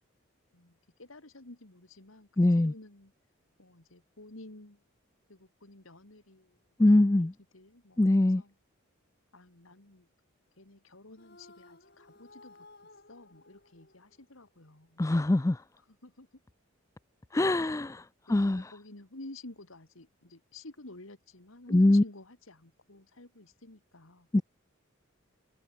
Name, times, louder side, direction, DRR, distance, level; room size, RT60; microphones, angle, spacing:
voice 1, 0.5-3.1 3.6-4.8 5.3-7.3 7.5-8.5 9.3-10.1 10.6-12.7 13.1-15.1 15.8-16.4 17.6-17.8 18.6-24.3, left 2 dB, 75° left, 2.6 m, -51 dB
voice 2, 2.4-2.7 6.8-7.3 8.0-8.4 15.0-15.6 17.3-18.0 18.3-18.7 21.7-22.0 24.3-24.4, left 1 dB, 15° left, 0.3 m, -23 dB
sound 1, 11.2-14.6, left 2 dB, 50° left, 7.7 m, -57 dB
head